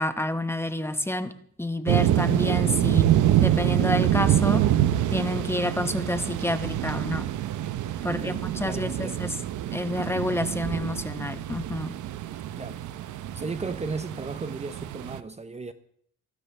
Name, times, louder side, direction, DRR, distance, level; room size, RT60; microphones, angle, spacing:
voice 1, 0.0-1.3 1.6-3.1 3.4-4.7 5.1-7.3 8.0-9.3 9.7-11.9, left 1 dB, 10° left, 1.1 m, -29 dB
sound 1, 1.9-15.2, right 12 dB, 75° right, 0.9 m, -26 dB
voice 2, 8.1-9.3 12.6-12.8 13.3-15.7, right 4 dB, 20° right, 0.9 m, -35 dB
24.5 x 12.5 x 3.4 m
cardioid pair, 90°, 30 cm